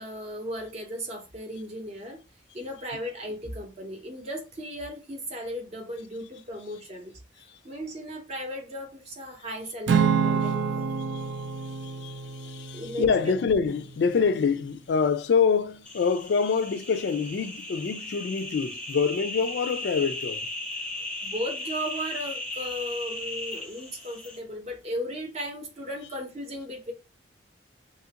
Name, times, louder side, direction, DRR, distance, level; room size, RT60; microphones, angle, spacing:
voice 1, 0.0-2.2 2.5-7.2 7.6-10.9 12.7-13.3 21.0-26.9, equal, 35° right, 0.6 m, -36 dB
Acoustic guitar / Strum, 9.9-14.3, right 6 dB, 80° right, 0.4 m, -28 dB
voice 2, 11.1-20.5, left 5 dB, 65° left, 0.3 m, -26 dB
sound 1, 15.9-24.4, left 2 dB, 5° left, 0.5 m, -36 dB
2.8 x 2.4 x 2.8 m
head